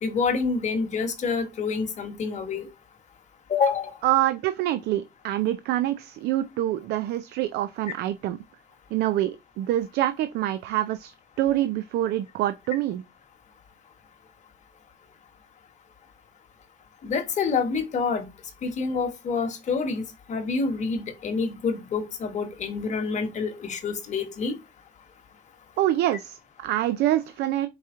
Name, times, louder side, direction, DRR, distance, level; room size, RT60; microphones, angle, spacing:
voice 1, 0.0-2.7 3.5-3.9 17.0-18.3 18.6-24.5, left 5 dB, 45° left, 1.2 m, -27 dB
voice 2, 4.0-8.4 8.9-13.0 25.8-27.7, right 13 dB, 75° right, 0.4 m, -26 dB
4.7 x 2.9 x 3.6 m
cardioid pair, 110°, 17 cm